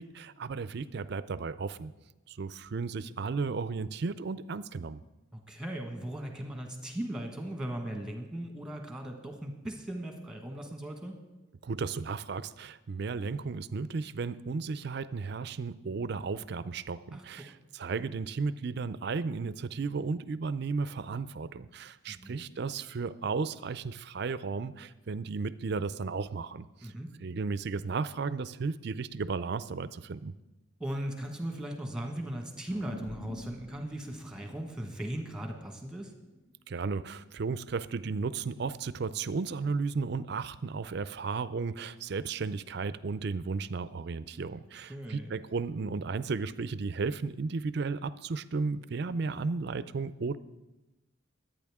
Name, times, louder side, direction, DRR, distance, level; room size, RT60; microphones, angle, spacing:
voice 1, 0.0-1.9 2.3-5.0 11.6-26.9 27.2-30.3 36.7-50.4, right 4 dB, 55° right, 15 dB, 0.4 m, -34 dB
voice 2, 5.3-11.2 17.1-17.5 20.8-20.9 22.1-22.4 26.8-27.1 30.8-36.1 44.9-45.3, right 1 dB, 5° right, 3 dB, 1.4 m, -38 dB
sound 1, 32.7-37.4, left 1 dB, 55° left, 5.6 m, -49 dB
22.5 x 9.1 x 3.6 m, 1.1 s
head